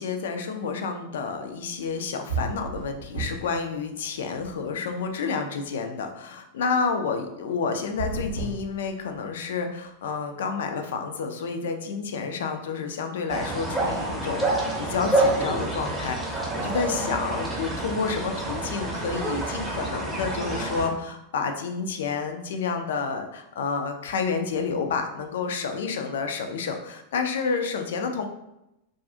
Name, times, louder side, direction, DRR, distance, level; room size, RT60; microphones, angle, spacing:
voice 1, 0.0-28.3, left 5 dB, 60° left, 6 dB, 0.3 m, -30 dB
sound 1, 1.9-2.0 2.3-3.6 3.9-5.0 7.8-9.4, right 3 dB, 85° right, 0.6 m, -33 dB
sound 2, 13.3-20.9, right 2 dB, 10° right, 0.6 m, -28 dB
2.4 x 2.3 x 2.5 m, 0.87 s
figure-of-eight pair, 90°, 0 cm